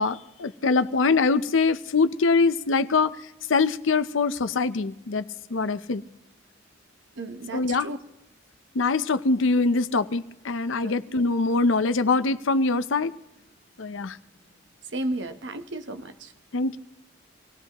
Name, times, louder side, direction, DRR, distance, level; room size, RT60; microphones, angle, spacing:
voice 1, 0.0-3.2 3.5-5.2 5.5-6.0 7.5-7.9 8.7-13.1 13.8-14.2 16.5-16.8, left 3 dB, 90° left, 12 dB, 0.7 m, -23 dB
voice 2, 7.2-8.0 10.8-10.9 14.9-16.3, right 1 dB, 65° right, 8 dB, 1.0 m, -33 dB
26.0 x 18.0 x 3.0 m, 0.91 s
head